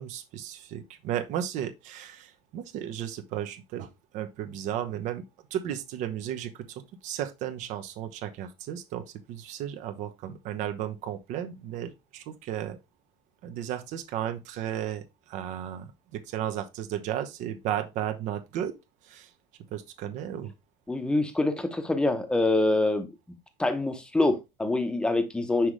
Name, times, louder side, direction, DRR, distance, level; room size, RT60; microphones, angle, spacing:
voice 1, 0.0-5.3 5.5-12.8 13.4-18.7 19.0-19.3 19.7-20.5, right 10 dB, 60° right, 0.9 m, -34 dB
voice 2, 20.9-23.1 23.6-25.7, left 2 dB, 5° left, 0.8 m, -25 dB
6.0 x 5.0 x 3.2 m
cardioid pair, 155°, 14 cm